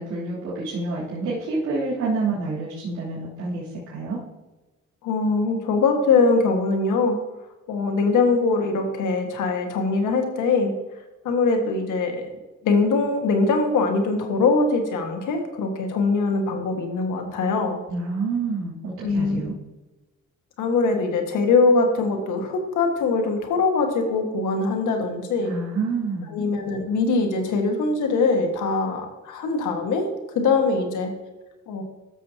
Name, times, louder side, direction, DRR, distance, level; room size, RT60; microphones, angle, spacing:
voice 1, 0.0-4.2 17.9-18.7 19.1-19.5 25.4-26.3, right 3 dB, 80° right, -8 dB, 3.1 m, -28 dB
voice 2, 5.0-7.2 7.7-10.7 11.2-12.3 12.6-17.8 19.0-19.5 20.6-25.5 26.3-30.1 30.3-31.1 31.7-31.8, left 4 dB, 80° left, 4 dB, 1.7 m, -22 dB
13.0 x 7.0 x 2.9 m, 1.1 s
cardioid pair, 90°, 30 cm